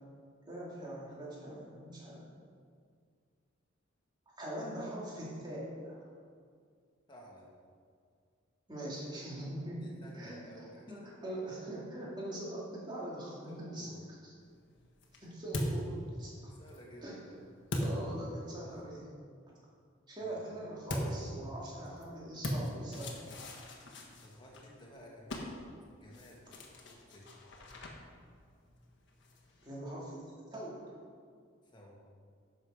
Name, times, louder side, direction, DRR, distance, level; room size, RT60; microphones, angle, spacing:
voice 1, 0.5-2.2 4.4-6.0 8.7-10.4 10.9-13.9 15.1-16.5 17.0-17.2 17.8-19.1 19.5-19.6 20.1-23.1 29.6-30.8, right 1 dB, 20° right, -6 dB, 2.6 m, -42 dB
voice 2, 7.1-7.5 9.6-11.1 13.5-14.1 16.4-17.1 20.2-20.4 24.2-25.7 26.0-27.3 31.6-32.0, equal, 25° left, -3 dB, 1.8 m, -54 dB
sound 1, 14.4-18.8 20.9-29.7, equal, 60° left, 1.4 m, -41 dB
11.5 x 6.7 x 5.0 m, 2.1 s
head